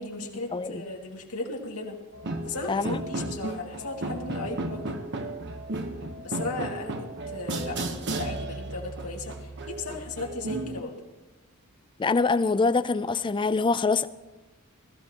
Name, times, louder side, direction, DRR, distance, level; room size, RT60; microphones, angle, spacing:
voice 1, 0.0-2.0 2.4-5.0 6.2-11.0, left 3 dB, 75° left, 2.3 m, -36 dB
voice 2, 0.5-0.8 2.7-3.0 12.0-14.1, left 4 dB, 20° left, 0.4 m, -24 dB
sound 1, 2.1-10.8, right 2 dB, 55° right, 1.1 m, -34 dB
20.0 x 14.0 x 3.0 m
head